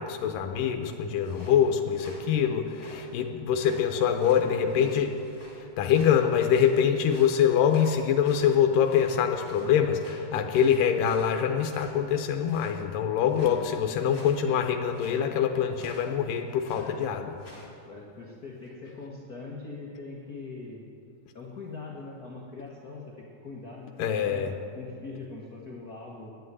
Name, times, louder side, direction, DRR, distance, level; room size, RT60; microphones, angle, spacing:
voice 1, 0.0-5.1 5.6-17.3 24.0-24.5, left 8 dB, 85° left, 4 dB, 2.4 m, -24 dB
sound 1, 1.0-3.1 3.5-5.6 5.9-9.1 9.4-12.0 12.4-12.8 13.2-13.6 14.0-14.5 14.9-15.2 15.7-16.1 16.5-16.9 17.4-17.6, left 2 dB, 25° left, 3.3 m, -50 dB
voice 2, 4.2-5.0 13.4-13.6 16.7-17.0 17.9-20.9 21.3-26.3, left 3 dB, 45° left, -2 dB, 1.2 m, -42 dB
11.0 x 10.0 x 9.4 m, 2.7 s
omnidirectional pair, 3.9 m